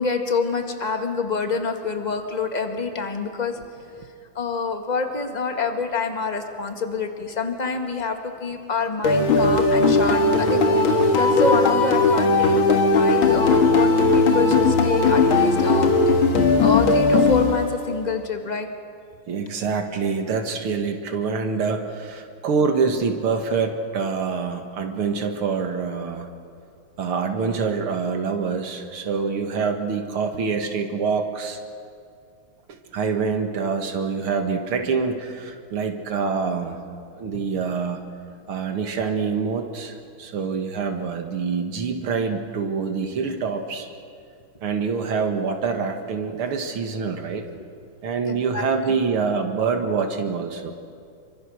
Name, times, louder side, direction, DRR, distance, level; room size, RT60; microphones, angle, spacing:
voice 1, 0.0-3.5 4.4-15.9 16.6-18.7 47.6-47.7 48.3-48.6, left 4 dB, 20° left, 5 dB, 1.8 m, -27 dB
sound 1, 9.0-18.0, left 3 dB, 70° left, 2.5 m, -18 dB
voice 2, 19.3-26.3 27.0-31.6 32.9-36.8 37.1-38.0 38.5-43.9 44.6-47.4 48.0-50.7, right 5 dB, 80° right, 5 dB, 2.6 m, -25 dB
27.5 x 24.5 x 6.5 m, 2.3 s
omnidirectional pair, 2.3 m